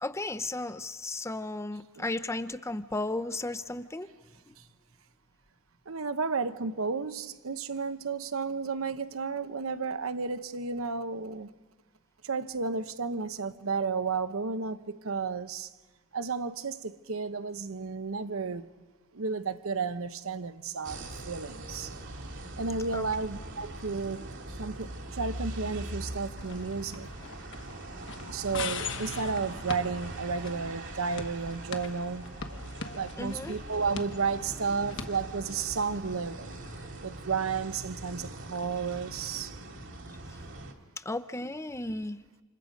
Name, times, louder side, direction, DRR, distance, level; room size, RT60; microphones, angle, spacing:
voice 1, 0.0-4.1 4.5-4.6 22.9-23.1 33.2-33.6 41.0-42.2, left 2 dB, 15° left, 0.7 m, -34 dB
voice 2, 5.9-11.5 12.2-15.7 16.1-18.6 19.1-21.9 22.6-24.2 24.5-27.1 28.3-32.2 32.9-36.5 37.0-39.6, right 4 dB, 75° right, 0.9 m, -32 dB
sound 1, 20.8-40.7, right 1 dB, 60° right, 2.5 m, -42 dB
sound 2, 26.4-36.9, left 5 dB, 60° left, 1.4 m, -42 dB
29.0 x 27.0 x 5.2 m
head